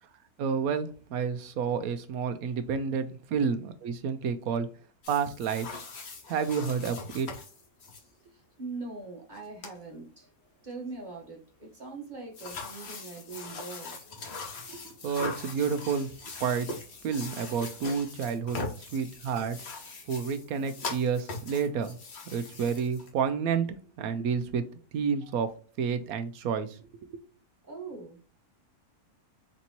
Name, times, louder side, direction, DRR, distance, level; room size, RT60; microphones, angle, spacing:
voice 1, 0.4-4.7 5.1-5.8 6.3-7.3 14.7-16.7 17.0-19.6 20.1-22.0 22.3-24.7 24.9-25.5 25.8-26.8 27.1-27.2, right 6 dB, 75° right, 1.0 m, -30 dB
sound 1, 5.0-8.0 9.3-9.4 9.6-9.8 12.3-23.1, left 3 dB, 50° left, 1.2 m, -41 dB
voice 2, 8.3-10.3 10.6-14.0 25.2-25.3 27.6-28.3, right 3 dB, 35° right, 1.2 m, -42 dB
4.1 x 3.5 x 2.8 m
omnidirectional pair, 1.6 m